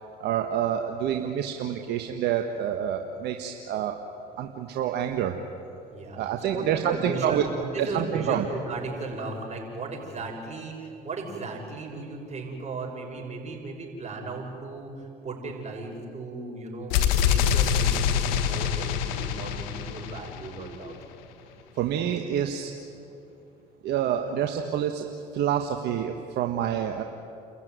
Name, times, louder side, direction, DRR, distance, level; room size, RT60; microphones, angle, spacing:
voice 1, 0.2-4.0 4.4-5.4 6.1-7.4 7.8-8.5 21.7-22.7 23.8-27.0, right 9 dB, 70° right, 5 dB, 1.4 m, -27 dB
voice 2, 6.4-20.9, right 3 dB, 40° right, 0 dB, 6.6 m, -35 dB
sound 1, 16.9-20.8, left 8 dB, 85° left, 1.3 m, -25 dB
29.5 x 14.5 x 9.4 m, 2.7 s
supercardioid pair, 70°, 18 cm